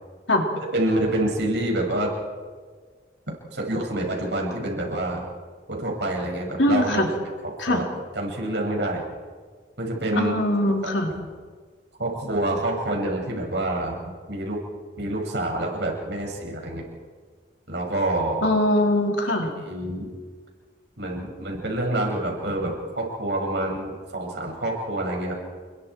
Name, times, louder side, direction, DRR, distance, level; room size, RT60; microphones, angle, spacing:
voice 1, 0.6-2.1 3.5-5.2 5.7-7.1 7.6-7.8 8.1-9.0 9.8-10.3 10.8-10.9 12.0-14.6 15.0-16.8 17.7-18.4 19.4-20.1 21.0-25.3, right 1 dB, 70° right, 0 dB, 6.6 m, -27 dB
voice 2, 6.6-7.1 7.6-7.8 10.1-11.1 18.4-19.5, left 1 dB, 85° left, 1 dB, 3.7 m, -22 dB
30.0 x 22.0 x 4.7 m, 1.5 s
head